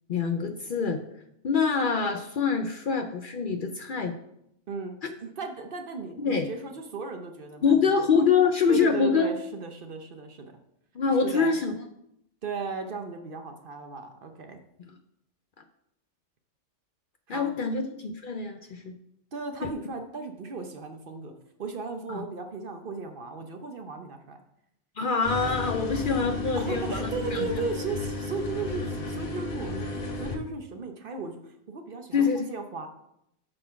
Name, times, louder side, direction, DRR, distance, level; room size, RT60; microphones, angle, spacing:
voice 1, 0.1-1.0 1.4-4.1 6.2-6.5 7.6-9.3 11.0-11.7 17.3-19.0 22.1-22.2 25.0-27.5 32.1-32.5, left 5 dB, 55° left, 5 dB, 0.6 m, -25 dB
voice 2, 4.7-8.2 8.7-10.5 11.2-11.6 12.4-14.6 17.3-17.5 19.3-21.3 21.6-24.4 26.5-32.9, right 4 dB, 50° right, 5 dB, 0.9 m, -36 dB
sound 1, 25.2-30.3, left 2 dB, 35° left, 1.1 m, -33 dB
7.7 x 4.1 x 5.7 m, 0.77 s
omnidirectional pair, 1.2 m